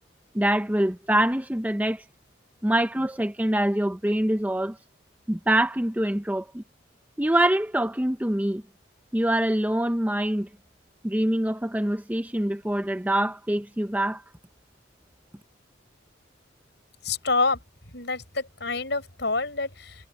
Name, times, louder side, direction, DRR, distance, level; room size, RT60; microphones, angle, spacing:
voice 1, 0.3-2.0 2.6-4.8 5.3-6.6 7.2-8.6 9.1-10.5 11.0-14.2, right 1 dB, 10° right, 0.6 m, -24 dB
voice 2, 17.0-17.6 17.9-20.1, left 3 dB, 65° left, 5.5 m, -27 dB
head